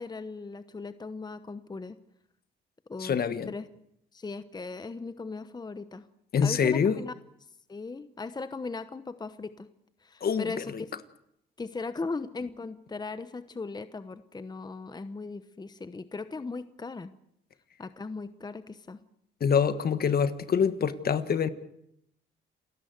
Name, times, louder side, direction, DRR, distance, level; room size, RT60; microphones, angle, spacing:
voice 1, 0.0-2.0 2.9-3.2 3.4-3.7 4.1-6.0 6.4-7.1 7.7-9.7 10.0-10.7 11.6-17.1 17.8-19.0, left 3 dB, 20° left, 12 dB, 1.0 m, -38 dB
voice 2, 3.0-3.5 6.3-7.0 10.2-10.8 19.4-21.5, left 7 dB, 50° left, 12 dB, 1.5 m, -25 dB
28.5 x 15.5 x 8.0 m, 0.78 s
cardioid pair, 90°, 20 cm